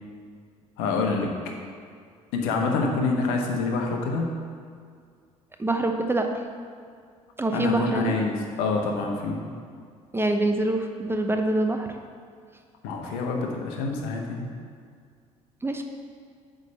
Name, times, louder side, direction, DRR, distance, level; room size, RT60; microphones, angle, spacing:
voice 1, 0.8-1.3 2.3-4.3 7.5-9.4 12.8-14.5, left 3 dB, 65° left, 1 dB, 1.2 m, -26 dB
voice 2, 5.6-6.3 7.4-8.2 10.1-11.9 15.6-15.8, right 2 dB, 15° right, 4 dB, 0.8 m, -25 dB
9.3 x 3.8 x 6.7 m, 2.1 s
figure-of-eight pair, 55°, 18 cm